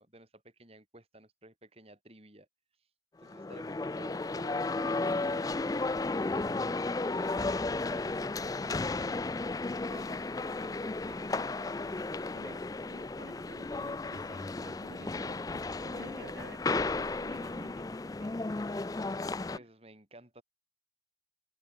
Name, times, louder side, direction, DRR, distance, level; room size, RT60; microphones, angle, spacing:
voice 1, 0.0-2.5 3.2-9.2 9.5-12.6 19.5-20.4, right 1 dB, 30° right, 5.0 m, -55 dB
sound 1, 3.2-19.6, left 3 dB, 20° left, 0.3 m, -34 dB
voice 2, 12.9-18.4 19.4-19.7, right 2 dB, 70° right, 2.2 m, -52 dB
open air
head